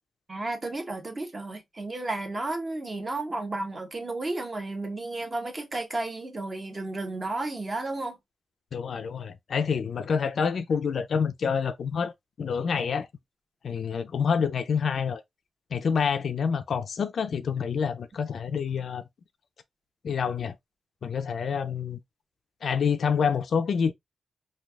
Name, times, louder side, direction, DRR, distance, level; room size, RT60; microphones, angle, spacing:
voice 1, 0.3-8.2, right 2 dB, 35° right, 0.9 m, -33 dB
voice 2, 8.7-12.1 12.4-13.1 13.6-15.2 15.7-19.0 20.0-20.6 21.0-22.0 22.6-23.9, left 6 dB, 75° left, 0.4 m, -27 dB
3.2 x 2.3 x 2.3 m
cardioid pair, 90°, 0 cm